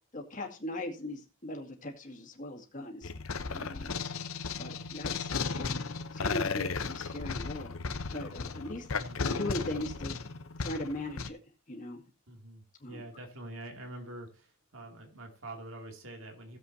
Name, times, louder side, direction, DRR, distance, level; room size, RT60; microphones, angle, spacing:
voice 1, 0.1-3.1 3.5-4.0 4.6-5.8 6.1-7.7 8.1-8.9 9.2-10.2 10.6-11.4 11.7-12.0 12.8-13.0, left 1 dB, 40° left, 1 dB, 2.1 m, -39 dB
sound 1, 3.0-11.3, left 5 dB, 80° left, 0.8 m, -35 dB
voice 2, 3.9-4.2 4.6-4.9 8.9-9.2 12.3-16.6, right 1 dB, 70° right, 3 dB, 2.7 m, -46 dB
16.5 x 7.6 x 2.8 m, 0.32 s
head